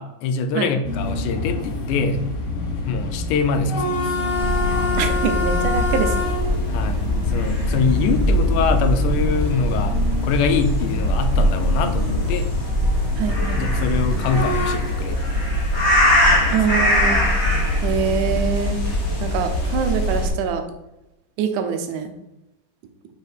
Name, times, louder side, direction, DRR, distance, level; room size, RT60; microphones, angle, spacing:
voice 1, 0.0-2.2 2.9-4.2 6.7-10.0 10.2-12.5 13.5-15.7 16.3-16.5, left 5 dB, 80° left, 8 dB, 2.0 m, -24 dB
sound 1, 0.8-14.7, left 2 dB, 60° left, 1.6 m, -27 dB
sound 2, 4.4-20.3, left 1 dB, 40° left, 1.0 m, -21 dB
voice 2, 5.0-6.2 13.2-13.7 16.5-17.3 17.8-18.8 19.2-20.6 21.4-22.1, right 7 dB, 75° right, 8 dB, 2.1 m, -24 dB
5.2 x 5.1 x 4.6 m, 0.93 s
omnidirectional pair, 3.8 m